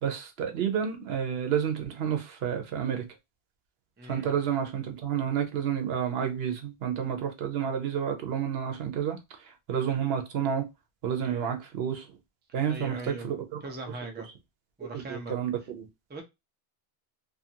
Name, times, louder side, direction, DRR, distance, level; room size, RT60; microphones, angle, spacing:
voice 1, 0.0-3.1 4.1-9.2 9.7-10.7 11.0-12.1 12.5-13.6 14.8-15.9, right 8 dB, 75° right, 0.9 m, -30 dB
voice 2, 4.0-4.4 11.2-11.5 12.7-13.3 13.6-14.3 14.8-15.3 16.1-16.2, right 2 dB, 15° right, 0.4 m, -40 dB
2.7 x 2.5 x 2.7 m
omnidirectional pair, 1.1 m